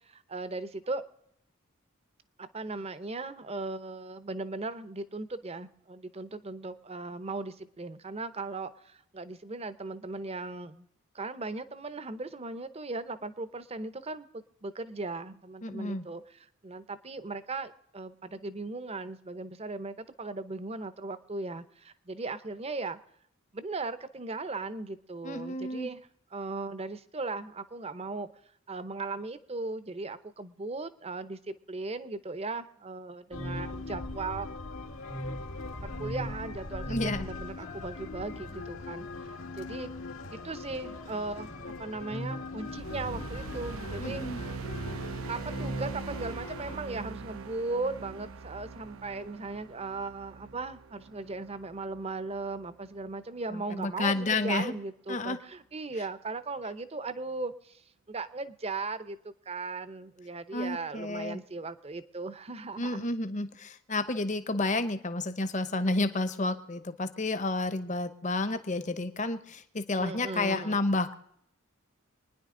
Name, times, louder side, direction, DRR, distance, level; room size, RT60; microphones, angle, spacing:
voice 1, 0.1-1.0 2.4-10.9 11.1-23.0 23.5-26.0 26.3-28.3 28.7-34.5 35.8-39.9 40.3-44.5 45.3-63.0 69.9-70.8, right 3 dB, 30° right, 13 dB, 0.7 m, -38 dB
voice 2, 15.6-16.0 25.2-25.9 36.9-37.3 44.0-44.4 53.5-54.7 55.1-55.4 60.5-61.4 62.8-71.1, left 2 dB, 35° left, 11 dB, 0.9 m, -31 dB
sound 1, 33.3-46.8, left 1 dB, 80° left, 1.7 m, -39 dB
sound 2, 42.6-53.1, right 4 dB, 85° right, 0.6 m, -42 dB
24.5 x 10.0 x 3.8 m, 0.72 s
head